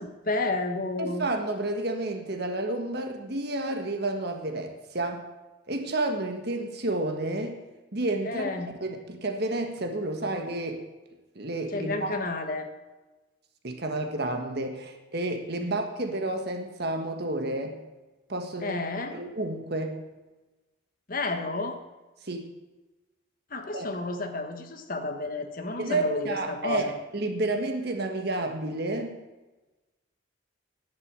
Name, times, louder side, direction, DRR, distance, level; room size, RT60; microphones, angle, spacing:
voice 1, 0.0-1.3 8.2-8.7 11.7-12.7 15.6-15.7 18.6-19.1 21.1-21.8 23.5-26.9, left 2 dB, 45° left, 5 dB, 1.4 m, -31 dB
voice 2, 1.0-5.2 5.7-7.6 7.9-8.5 8.8-10.8 11.3-12.3 13.6-17.8 18.3-18.8 19.1-20.0 22.2-22.5 23.7-23.9 25.8-29.2, right 2 dB, 50° right, 5 dB, 1.5 m, -30 dB
10.5 x 8.2 x 7.5 m, 1.1 s
head